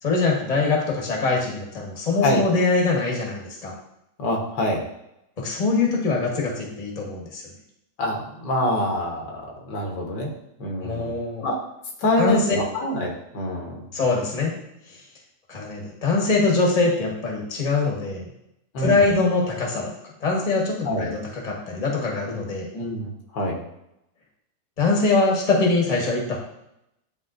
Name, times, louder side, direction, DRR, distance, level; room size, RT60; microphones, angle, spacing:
voice 1, 0.0-3.7 5.4-7.4 10.8-11.4 12.2-12.5 13.9-14.5 14.9-15.0 15.5-18.2 18.8-19.9 20.2-22.7 24.8-26.4, left 3 dB, 25° left, -2 dB, 1.2 m, -23 dB
voice 2, 4.2-4.8 8.0-10.3 10.6-11.6 12.0-13.9 18.7-19.0 20.9-21.1 22.7-23.6, left 1 dB, 80° left, 0 dB, 1.8 m, -25 dB
10.5 x 3.6 x 2.5 m, 0.83 s
omnidirectional pair, 1.8 m